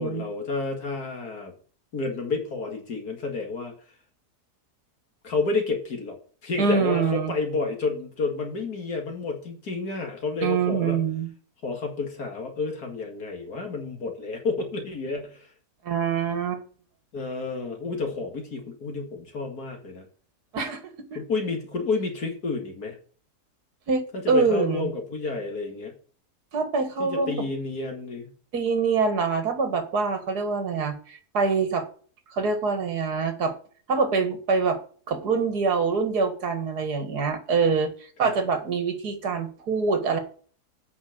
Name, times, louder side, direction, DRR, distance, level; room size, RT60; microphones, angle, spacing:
voice 1, 0.0-1.5 1.9-3.7 5.2-6.2 6.4-11.0 11.6-15.5 17.1-20.1 21.1-23.0 24.1-25.9 27.0-28.3 38.2-38.3, left 3 dB, 70° left, 3 dB, 2.5 m, -30 dB
voice 2, 6.6-7.3 10.4-11.3 15.8-16.6 20.5-20.8 23.9-24.9 26.5-27.3 28.5-31.8 32.3-33.5 33.9-34.8 35.1-37.9 38.2-40.2, right 5 dB, 75° right, 7 dB, 2.3 m, -25 dB
8.6 x 5.7 x 7.7 m, 0.43 s
omnidirectional pair, 1.7 m